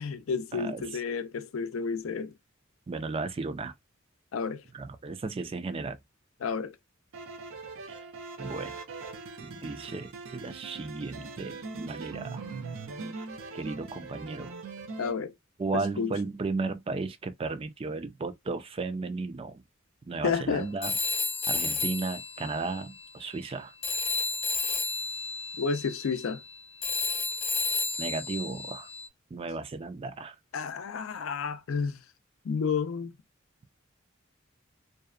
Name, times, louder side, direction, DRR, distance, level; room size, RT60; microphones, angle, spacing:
voice 1, 0.0-2.3 4.3-4.6 6.4-6.8 15.0-15.3 16.0-16.1 20.2-20.7 25.6-26.4 30.5-32.0 32.4-33.1, left 5 dB, 90° left, 0.4 m, -31 dB
voice 2, 0.5-1.0 2.9-3.7 4.7-6.0 7.9-8.0 8.4-8.9 9.4-12.5 13.1-13.3 13.5-14.6 15.6-19.6 20.1-20.9 21.5-23.7 28.0-28.9 29.3-30.4, right 3 dB, 30° right, 0.3 m, -35 dB
sound 1, 7.1-15.2, right 4 dB, 85° right, 0.6 m, -41 dB
Telephone, 20.8-23.6 23.8-29.1, left 4 dB, 30° left, 0.5 m, -32 dB
2.7 x 2.0 x 2.4 m
head